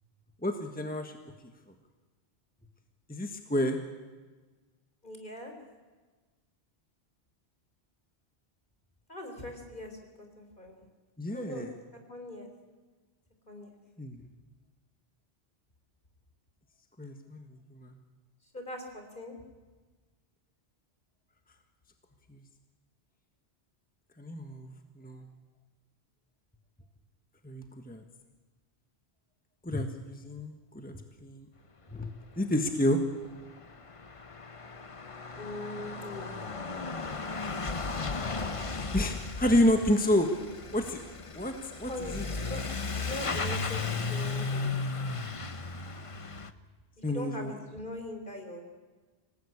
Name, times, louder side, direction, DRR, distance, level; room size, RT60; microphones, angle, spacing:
voice 1, 0.4-1.1 3.1-3.8 11.2-11.7 14.0-14.2 17.0-17.9 22.3-22.4 24.2-25.2 27.4-28.0 29.6-31.5 31.9-32.1 32.4-33.0 38.9-40.3 40.7-41.0 41.3-41.5 41.8-42.2 47.0-47.5, left 1 dB, 10° left, 5 dB, 1.4 m, -29 dB
voice 2, 5.0-5.5 9.1-10.0 10.4-10.9 11.3-11.7 12.1-12.5 13.5-13.7 18.5-19.3 35.4-36.4 37.3-38.0 41.8-45.2 47.0-48.6, left 1 dB, 50° left, 4 dB, 4.2 m, -41 dB
Truck / Accelerating revving vroom, 32.8-32.9 33.1-46.5, left 4 dB, 30° left, 1.0 m, -35 dB
26.0 x 18.0 x 8.6 m, 1.3 s
omnidirectional pair, 1.1 m